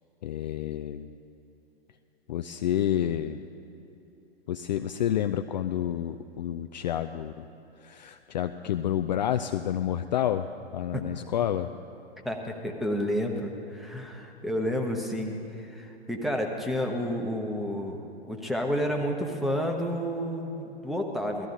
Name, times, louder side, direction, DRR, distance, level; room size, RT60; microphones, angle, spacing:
voice 1, 0.2-1.1 2.3-3.4 4.5-7.3 7.8-10.5 10.7-11.7, left 10 dB, 45° left, 8 dB, 0.4 m, -29 dB
voice 2, 12.2-18.0 18.3-21.5, equal, ahead, 1 dB, 0.9 m, -30 dB
19.0 x 13.0 x 3.9 m, 2.9 s
figure-of-eight pair, 105°, 32 cm